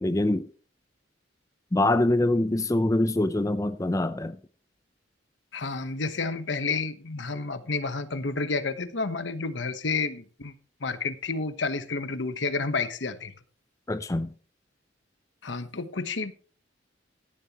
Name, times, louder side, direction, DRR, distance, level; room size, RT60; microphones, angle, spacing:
voice 1, 0.0-0.5 1.7-4.4 13.9-14.3, left 1 dB, 15° left, 0.5 m, -24 dB
voice 2, 5.5-10.5 10.8-13.3 15.4-16.3, left 4 dB, 70° left, 1.1 m, -30 dB
13.5 x 10.5 x 3.0 m
head